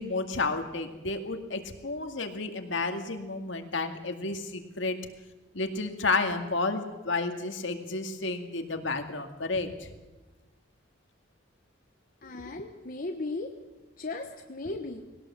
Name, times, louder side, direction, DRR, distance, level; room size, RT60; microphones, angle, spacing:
voice 1, 0.0-5.0 5.5-9.9, left 3 dB, 65° left, 5 dB, 2.1 m, -31 dB
voice 2, 12.2-13.5 14.0-15.0, left 2 dB, 45° left, 3 dB, 1.2 m, -36 dB
20.5 x 18.0 x 7.5 m, 1.1 s
head